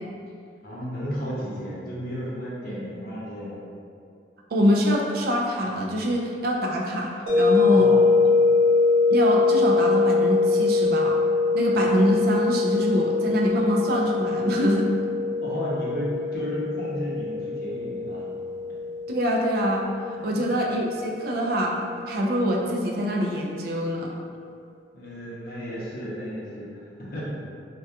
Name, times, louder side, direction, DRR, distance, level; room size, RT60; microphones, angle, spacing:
voice 1, 0.6-3.6 7.6-8.2 15.4-18.2 20.2-20.5 24.9-26.7 27.0-27.2, equal, 50° left, -7 dB, 0.6 m, -33 dB
voice 2, 4.5-7.1 7.4-7.9 9.1-11.1 11.5-14.9 19.1-19.8 20.2-21.7 22.1-24.1, equal, 50° right, -1 dB, 0.3 m, -24 dB
sound 1, 7.3-22.2, left 4 dB, 90° right, 0.7 m, -23 dB
2.3 x 2.2 x 2.7 m, 2.3 s
head